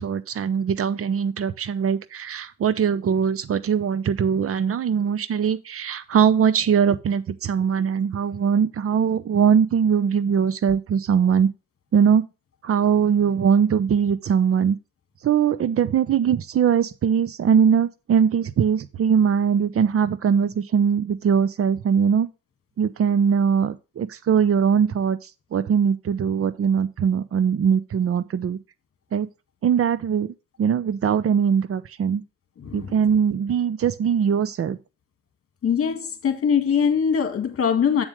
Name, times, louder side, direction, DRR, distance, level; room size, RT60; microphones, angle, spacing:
voice 1, 0.0-11.5 11.9-12.2 12.6-14.8 15.2-22.3 22.8-25.2 25.5-28.6 29.1-29.3 29.6-30.3 30.6-32.2 32.7-34.8, right 7 dB, 50° right, 0.8 m, -21 dB
voice 2, 32.6-32.9 35.6-38.0, left 7 dB, 50° left, 1.9 m, -22 dB
8.1 x 7.2 x 3.1 m
cardioid pair, 90°, 30 cm